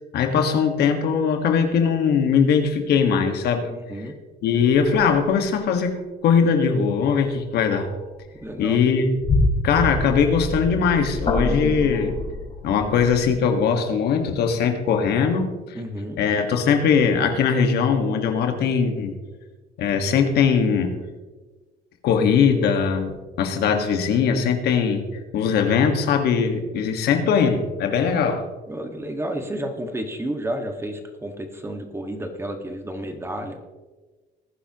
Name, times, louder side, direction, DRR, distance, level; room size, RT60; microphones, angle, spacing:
voice 1, 0.1-3.7 4.4-7.9 8.6-9.1 9.6-12.2 12.6-15.8 16.2-19.2 19.8-21.0 22.0-23.1 23.4-28.4, left 6 dB, 70° left, 5 dB, 1.7 m, -20 dB
voice 2, 3.7-4.2 8.3-9.0 15.7-16.2 28.7-33.6, right 1 dB, 15° right, 5 dB, 1.7 m, -31 dB
sound 1, 4.8-5.3 6.4-6.5 7.0-7.3 7.7-8.0 8.4-13.4, left 2 dB, 35° left, 4.5 m, -27 dB
19.5 x 10.0 x 3.0 m, 1.3 s
cardioid pair, 110°, 17 cm